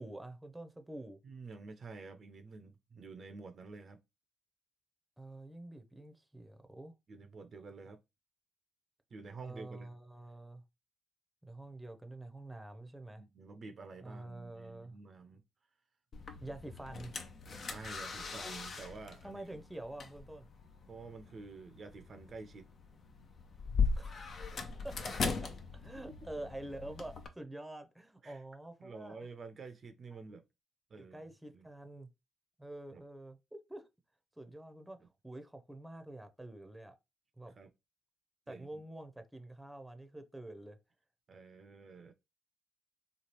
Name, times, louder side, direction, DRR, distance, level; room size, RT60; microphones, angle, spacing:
voice 1, 0.0-1.2 5.2-6.9 9.4-10.6 11.4-13.2 14.0-14.9 16.4-17.1 19.2-20.5 24.0-24.5 24.8-25.1 25.4-29.2 30.1-30.2 31.0-32.1 32.6-33.9 34.4-35.0 35.2-37.0 37.4-37.5 38.5-40.8, right 1 dB, 10° right, 0.6 m, -47 dB
voice 2, 1.2-4.0 7.1-8.0 9.1-9.9 13.2-15.4 17.6-19.6 20.9-22.7 28.2-28.4 28.8-30.4 30.9-31.2 31.5-31.7 32.9-33.0 35.0-35.1 37.6-37.7 38.5-38.8 41.3-42.1, right 4 dB, 50° right, 0.5 m, -49 dB
sound 1, 16.1-27.3, left 5 dB, 55° left, 0.5 m, -39 dB
3.1 x 2.3 x 2.9 m
hypercardioid pair, 45°, 0 cm